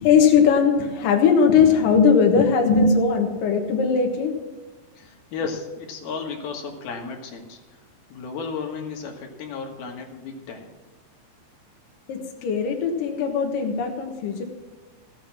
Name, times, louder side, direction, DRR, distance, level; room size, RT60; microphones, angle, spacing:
voice 1, 0.0-4.3 12.1-14.4, left 6 dB, 70° left, 2 dB, 2.9 m, -19 dB
voice 2, 5.0-7.6 8.1-10.7, left 5 dB, 85° left, 2 dB, 3.5 m, -34 dB
15.5 x 8.1 x 6.0 m, 1.2 s
omnidirectional pair, 4.3 m